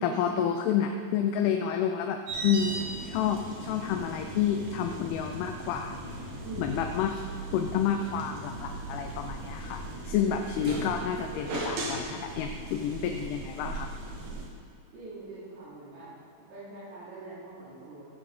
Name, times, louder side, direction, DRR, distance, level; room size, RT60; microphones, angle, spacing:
voice 1, 0.0-6.0 6.6-7.2 7.5-13.9, left 8 dB, 80° left, 4 dB, 2.5 m, -29 dB
sound 1, 2.3-14.5, right 2 dB, 60° right, 3.0 m, -38 dB
voice 2, 6.4-6.8 14.9-16.1 16.5-18.0, right 3 dB, 80° right, -14 dB, 4.9 m, -42 dB
15.0 x 6.8 x 3.7 m, 2.4 s
omnidirectional pair, 4.6 m